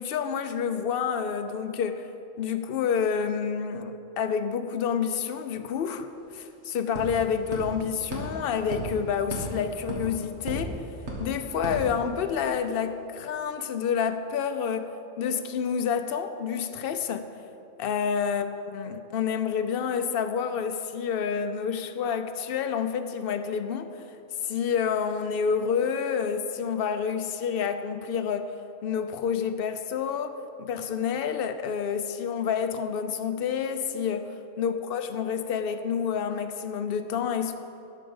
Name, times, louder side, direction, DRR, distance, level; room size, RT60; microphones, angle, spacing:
voice 1, 0.0-2.1 2.4-10.8 11.2-17.3 17.8-18.5 18.7-24.2 24.4-37.5, left 7 dB, 55° left, 0.7 m, -29 dB
sound 1, 5.8-5.9 6.2-12.6, right 1 dB, 60° right, 2.2 m, -37 dB
12.5 x 5.1 x 7.0 m
omnidirectional pair, 1.3 m